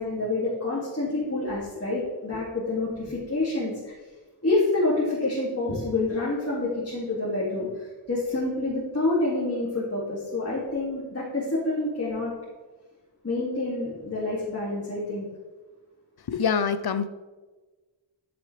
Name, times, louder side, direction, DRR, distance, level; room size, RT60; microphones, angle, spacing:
voice 1, 0.0-3.7 4.4-12.3 13.2-15.3, left 2 dB, 30° left, -7 dB, 2.3 m, -27 dB
voice 2, 16.3-17.1, left 6 dB, 55° left, 12 dB, 0.6 m, -25 dB
13.0 x 7.1 x 3.3 m, 1.3 s
wide cardioid pair, 100°, 46 cm